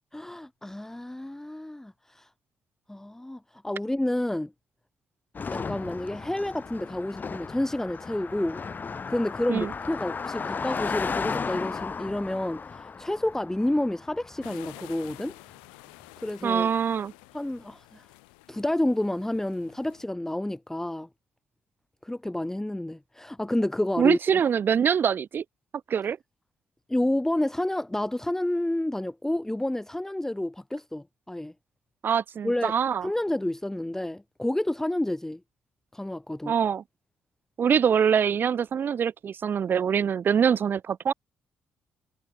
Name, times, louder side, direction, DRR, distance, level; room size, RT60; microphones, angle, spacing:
voice 1, 0.1-2.3 2.9-4.5 5.5-8.6 9.1-15.4 16.2-16.7 17.3-18.1 18.5-21.1 22.0-24.4 26.9-31.5 32.4-32.7 33.0-35.4 35.9-36.5, left 1 dB, 10° left, 1.1 m, -29 dB
Car passing by, 5.3-14.9, left 5 dB, 35° left, 2.1 m, -35 dB
sound 1, 14.4-20.0, left 32 dB, 70° left, 1.2 m, -50 dB
voice 2, 16.4-17.1 24.0-25.4 25.9-26.2 32.0-33.1 36.5-36.8 37.6-41.1, right 7 dB, 40° right, 0.4 m, -24 dB
figure-of-eight pair, 45°, 6 cm